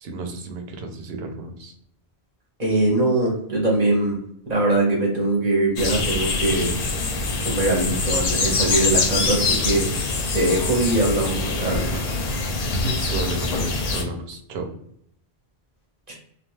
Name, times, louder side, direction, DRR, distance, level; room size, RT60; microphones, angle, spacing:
voice 1, 0.0-1.7 12.8-14.7, right 2 dB, 85° right, 4 dB, 0.8 m, -32 dB
voice 2, 2.6-4.2 4.5-6.7 7.4-9.8 10.3-11.9 16.1-16.2, right 2 dB, 45° right, -3 dB, 0.7 m, -22 dB
sound 1, 5.8-14.0, left 3 dB, 75° left, 0.8 m, -24 dB
2.3 x 2.3 x 3.0 m, 0.70 s
omnidirectional pair, 1.1 m